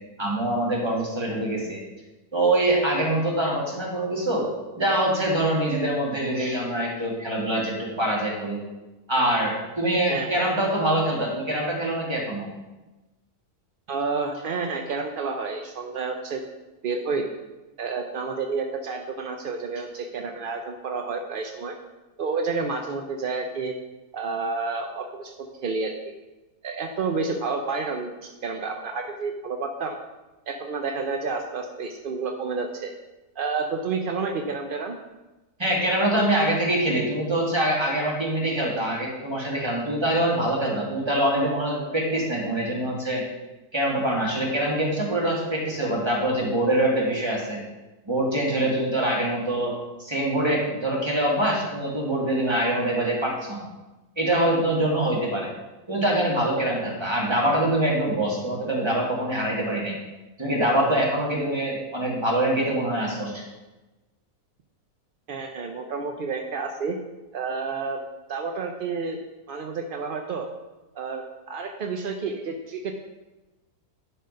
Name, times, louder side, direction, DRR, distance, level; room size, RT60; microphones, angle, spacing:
voice 1, 0.2-1.8 2.3-4.5 4.8-8.6 9.1-12.5 35.6-43.2 43.7-47.6 48.1-53.7 54.2-55.5 55.9-60.0 60.4-63.4, right 1 dB, 15° right, -3 dB, 1.8 m, -24 dB
voice 2, 10.1-10.5 13.9-16.4 16.8-17.3 17.8-21.7 22.2-23.7 24.1-26.1 26.6-30.0 30.5-32.9 33.4-35.0 65.3-67.0 67.3-68.0 68.3-69.2 69.5-70.5 70.9-72.9, right 4 dB, 60° right, 3 dB, 0.5 m, -30 dB
10.5 x 4.1 x 5.2 m, 1.1 s
omnidirectional pair, 1.6 m